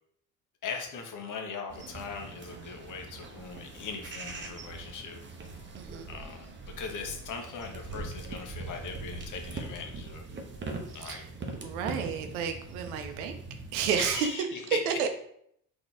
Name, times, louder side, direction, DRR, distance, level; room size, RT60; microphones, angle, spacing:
voice 1, 0.6-5.2 6.1-10.2 10.9-11.3 13.0-13.1 14.0-15.1, left 5 dB, 45° left, 4 dB, 0.9 m, -39 dB
sound 1, 1.7-14.2, right 3 dB, 25° right, 0.9 m, -42 dB
voice 2, 5.8-6.1 10.9-11.2 11.5-13.4 13.7-14.3 14.9-15.1, right 7 dB, 75° right, 6 dB, 0.7 m, -31 dB
3.8 x 3.0 x 3.5 m, 0.70 s
hypercardioid pair, 50°, 44 cm